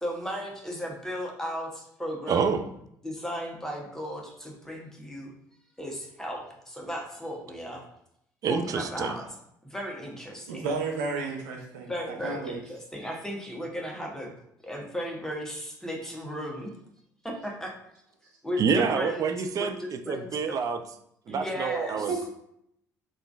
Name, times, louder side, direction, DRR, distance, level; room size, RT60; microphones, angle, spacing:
voice 1, 0.0-2.5 3.0-5.3 5.8-7.8 8.5-9.2 9.6-10.7 11.9-14.3 14.6-16.7 17.2-17.7 18.4-19.3 19.6-20.3 21.3-22.2, equal, 5° left, -1 dB, 0.9 m, -35 dB
voice 2, 2.3-2.6 8.4-9.2 18.6-20.8 21.3-22.3, right 6 dB, 35° right, 8 dB, 0.4 m, -27 dB
voice 3, 10.5-12.6 22.1-22.2, right 4 dB, 70° right, 0 dB, 0.8 m, -32 dB
3.5 x 2.4 x 2.3 m, 0.74 s
figure-of-eight pair, 55°, 10 cm